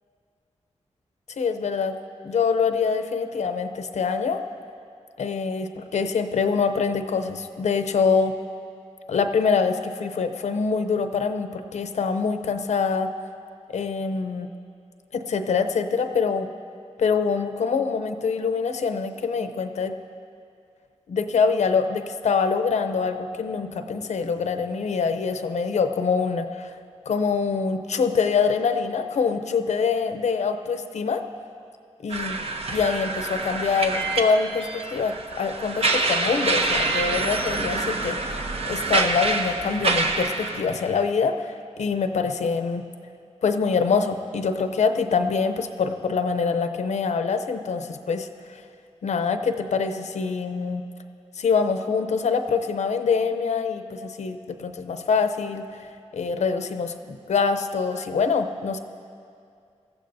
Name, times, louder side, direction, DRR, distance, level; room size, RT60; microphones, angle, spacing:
voice 1, 1.4-1.9 2.2-4.4 5.2-8.3 9.1-13.1 13.7-14.5 15.1-16.5 17.0-19.9 21.1-26.7 27.1-31.2 32.0-32.3 32.7-38.2 38.7-42.8 43.4-48.3 49.0-50.8 51.4-55.6 56.1-58.8, left 5 dB, 85° left, 8 dB, 0.7 m, -24 dB
sound 1, 32.1-40.6, right 3 dB, 60° right, 0.8 m, -26 dB
18.5 x 14.5 x 2.7 m, 2.4 s
wide cardioid pair, 95°, 12 cm